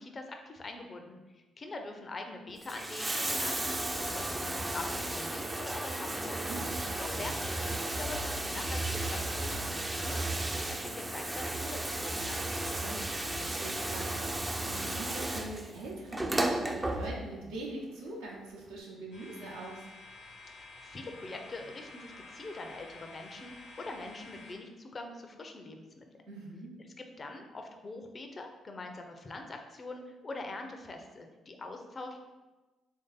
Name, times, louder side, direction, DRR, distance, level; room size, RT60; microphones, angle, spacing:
voice 1, 0.0-6.4 7.0-10.2 10.5-12.5 20.5-26.0 27.0-32.3, left 2 dB, 40° left, 4 dB, 0.5 m, -44 dB
Bathtub (filling or washing), 2.5-17.5 18.6-18.7, right 1 dB, 20° right, 0.4 m, -34 dB
voice 2, 6.5-7.0 12.8-19.8 26.3-26.8, right 2 dB, 85° right, -4 dB, 0.7 m, -43 dB
sound 1, 19.1-24.5, left 2 dB, 70° left, 1.1 m, -50 dB
3.1 x 2.7 x 3.9 m, 1.2 s
hypercardioid pair, 45°, 0 cm